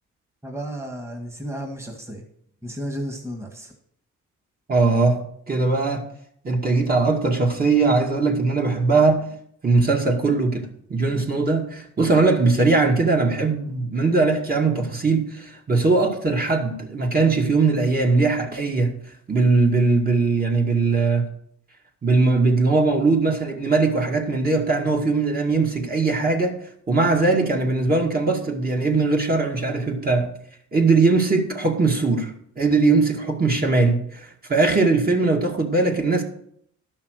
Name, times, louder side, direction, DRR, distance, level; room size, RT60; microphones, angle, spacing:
voice 1, 0.4-2.2 2.6-3.7, equal, 10° right, 3 dB, 1.8 m, -33 dB
voice 2, 4.7-5.2 5.5-6.1 6.4-9.3 9.6-18.9 19.3-21.2 22.0-26.5 26.9-30.3 30.7-32.3 32.6-36.2, right 3 dB, 30° right, 2 dB, 2.2 m, -20 dB
12.0 x 5.8 x 6.5 m, 0.67 s
cardioid pair, 90°, 30 cm